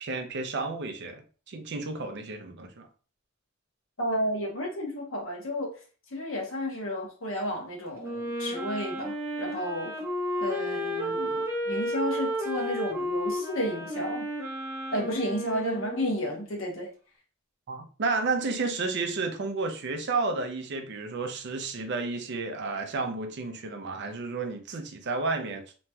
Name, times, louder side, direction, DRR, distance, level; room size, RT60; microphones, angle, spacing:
voice 1, 0.0-2.9 17.7-25.6, right 3 dB, 55° right, 0.5 m, -31 dB
voice 2, 4.0-5.7 6.1-9.9 10.4-14.3 14.9-16.9, equal, 70° left, 1.0 m, -32 dB
Wind instrument woodwind instrument, 8.0-16.4, equal, 15° right, 0.8 m, -32 dB
3.0 x 2.8 x 2.2 m
head